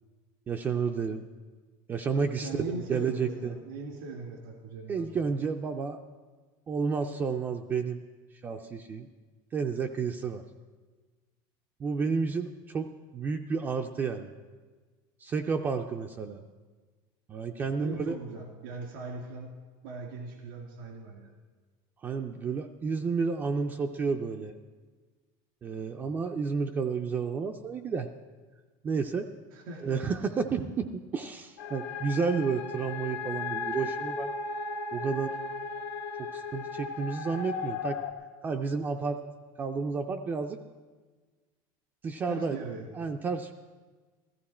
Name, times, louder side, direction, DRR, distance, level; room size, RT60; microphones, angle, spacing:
voice 1, 0.5-1.3 1.9-2.5 2.7-3.5 4.9-6.0 6.7-8.0 8.4-9.1 9.5-10.4 11.8-12.9 13.1-14.3 15.2-16.4 17.3-18.2 22.0-24.6 25.6-28.1 28.8-29.3 29.8-34.3 34.9-35.3 36.2-38.0 38.4-39.2 39.6-40.6 42.0-42.6 43.0-43.5, right 5 dB, 20° right, 4 dB, 0.4 m, -31 dB
voice 2, 2.4-5.1 17.8-21.3 29.5-30.1 42.3-42.9, right 3 dB, 90° right, 1 dB, 2.4 m, -40 dB
sound 1, 31.6-38.1, left 4 dB, 65° left, 1.1 m, -36 dB
15.0 x 14.5 x 4.3 m, 1.4 s
cardioid pair, 170°, 11 cm